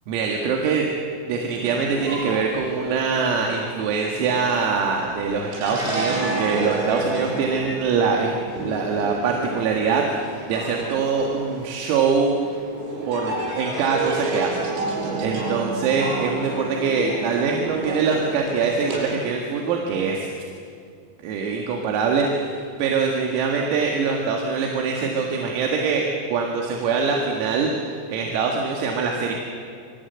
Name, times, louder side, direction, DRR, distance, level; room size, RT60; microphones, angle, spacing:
voice 1, 0.1-0.9 1.3-8.3 8.6-12.4 13.1-20.3 21.2-26.0 26.3-29.3, right 5 dB, 90° right, 1 dB, 4.7 m, -23 dB
sound 1, 1.7-19.1, right 2 dB, 70° right, 8.8 m, -31 dB
29.0 x 25.0 x 8.1 m, 2.4 s
omnidirectional pair, 5.9 m